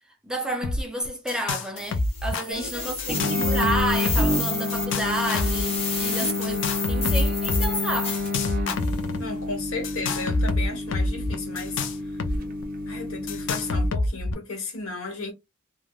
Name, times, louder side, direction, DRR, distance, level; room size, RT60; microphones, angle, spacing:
voice 1, 0.2-6.6 6.9-8.2, right 1 dB, 5° right, 0.5 m, -30 dB
sound 1, 0.6-1.7 1.9-2.4 3.0-4.4 4.7-5.6 6.4-7.7 8.1-9.2 9.8-12.4 12.6-12.7 13.3-14.3, left 2 dB, 60° left, 0.4 m, -26 dB
sound 2, 1.8-9.0, left 4 dB, 30° left, 0.9 m, -31 dB
voice 2, 2.5-3.5 6.1-7.1 9.2-11.8 12.9-15.3, left 3 dB, 80° left, 1.2 m, -35 dB
sound 3, 3.1-13.9, left 3 dB, 45° right, 0.6 m, -30 dB
3.3 x 2.2 x 2.3 m
head